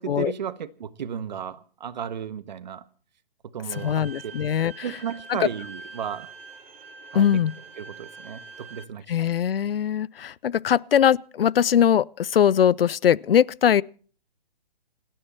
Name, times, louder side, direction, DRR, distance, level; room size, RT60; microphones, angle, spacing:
voice 1, 0.0-2.8 3.5-4.1 4.8-6.3 7.1-7.4 7.8-9.3, right 8 dB, 50° right, 1.4 m, -34 dB
voice 2, 3.7-4.9 5.3-5.5 7.1-7.5 9.1-13.8, left 9 dB, 75° left, 0.6 m, -21 dB
Bowed string instrument, 3.7-8.8, right 4 dB, 75° right, 1.4 m, -44 dB
29.0 x 10.0 x 4.4 m
hypercardioid pair, 165°, 29 cm